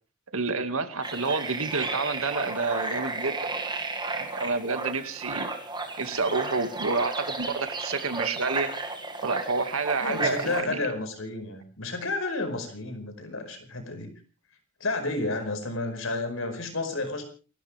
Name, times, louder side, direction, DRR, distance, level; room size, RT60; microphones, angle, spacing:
voice 1, 0.3-3.5 4.1-5.5 6.0-8.7 9.2-10.9, right 4 dB, 90° right, 8 dB, 2.1 m, -29 dB
sound 1, 1.0-10.6, right 3 dB, 20° right, 2.1 m, -33 dB
voice 2, 10.0-14.1 14.8-17.2, left 2 dB, 70° left, 6 dB, 5.1 m, -31 dB
29.0 x 13.0 x 3.5 m, 0.36 s
head